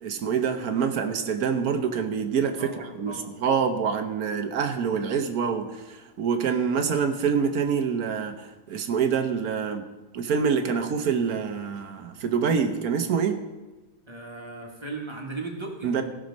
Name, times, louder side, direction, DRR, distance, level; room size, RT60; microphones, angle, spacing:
voice 1, 0.0-8.4 8.7-9.8 10.1-13.4 15.8-16.0, right 6 dB, 80° right, 8 dB, 1.4 m, -26 dB
voice 2, 2.6-3.3 14.1-16.0, right 2 dB, 20° right, 0 dB, 1.7 m, -37 dB
16.5 x 6.4 x 5.2 m, 1.2 s
omnidirectional pair, 1.6 m